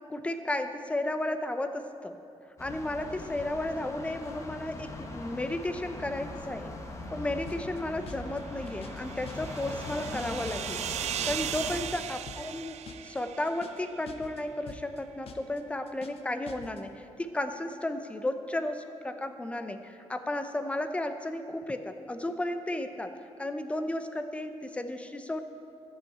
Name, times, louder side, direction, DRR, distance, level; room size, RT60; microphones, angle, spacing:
voice 1, 0.1-2.2 2.6-6.7 7.1-10.8 11.2-12.8 13.0-25.4, left 1 dB, 10° left, 8 dB, 0.6 m, -33 dB
sound 1, 2.6-11.8, left 2 dB, 25° left, 1.1 m, -41 dB
sound 2, 7.5-7.8 8.1-8.4 8.7-9.0 9.3-9.6 9.9-10.2 10.5-10.8 11.1-11.4 11.7-12.0 12.3-12.6 12.9-13.2 13.5-13.8 14.1-14.4 14.7-15.0 15.3-15.6 15.9-16.2 16.5-16.8, left 5 dB, 60° left, 0.8 m, -47 dB
sound 3, 8.4-14.0, right 11 dB, 80° right, 0.4 m, -38 dB
14.0 x 5.7 x 8.6 m, 2.6 s
wide cardioid pair, 155°, 11 cm